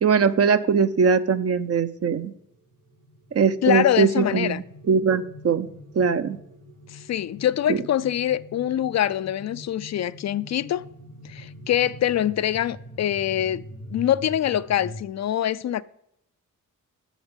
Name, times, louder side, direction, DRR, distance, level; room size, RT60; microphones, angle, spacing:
voice 1, 0.0-2.3 3.3-5.7 5.9-6.4 7.7-7.8, right 6 dB, 45° right, 0.7 m, -21 dB
sound 1, 2.3-15.0, equal, 75° right, 3.2 m, -44 dB
voice 2, 3.6-4.6 6.9-10.8 11.3-13.6 13.9-15.8, left 11 dB, 55° left, 0.4 m, -24 dB
7.2 x 7.1 x 7.3 m
cardioid pair, 65°, 32 cm